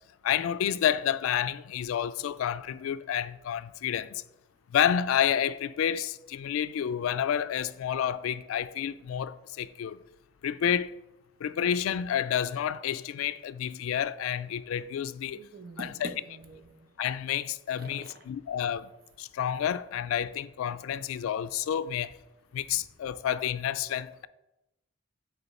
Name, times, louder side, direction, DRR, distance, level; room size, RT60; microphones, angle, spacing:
voice 1, 0.2-4.2 4.7-10.0 10.4-11.0 11.4-15.4 15.8-16.1 17.0-18.9 19.2-22.1 22.5-24.3, left 9 dB, 90° left, 0.3 m, -29 dB
voice 2, 15.3-16.9 17.8-18.2 22.7-22.8, right 3 dB, 45° right, 0.6 m, -44 dB
6.9 x 4.1 x 4.2 m
head